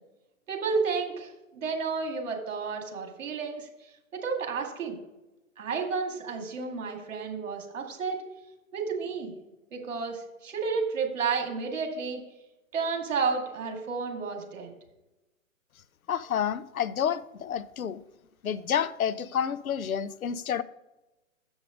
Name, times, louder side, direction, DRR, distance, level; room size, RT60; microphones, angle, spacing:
voice 1, 0.5-3.7 4.2-5.0 5.6-8.2 8.7-9.3 9.7-12.2 12.7-14.7, right 5 dB, 65° right, 2.1 m, -31 dB
voice 2, 16.1-18.0 18.4-20.6, left 8 dB, 85° left, 0.6 m, -29 dB
7.3 x 6.2 x 5.1 m
hypercardioid pair, 130°, 41 cm